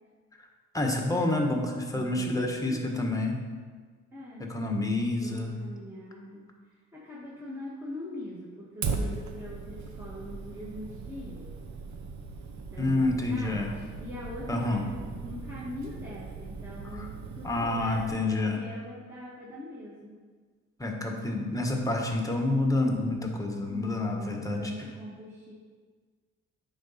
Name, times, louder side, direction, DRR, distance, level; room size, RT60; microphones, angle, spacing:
voice 1, 0.7-3.4 4.5-5.5 12.8-13.7 14.5-14.8 17.0-17.1 17.4-18.6 20.8-24.7, left 2 dB, 10° left, 2 dB, 1.3 m, -28 dB
voice 2, 1.9-2.9 4.1-4.5 5.1-11.6 12.7-20.2 23.7-25.5, left 1 dB, 10° right, -7 dB, 1.5 m, -42 dB
Fire, 8.8-18.1, right 4 dB, 70° right, 0.9 m, -38 dB
8.9 x 4.0 x 5.6 m, 1.5 s
cardioid pair, 90°, 30 cm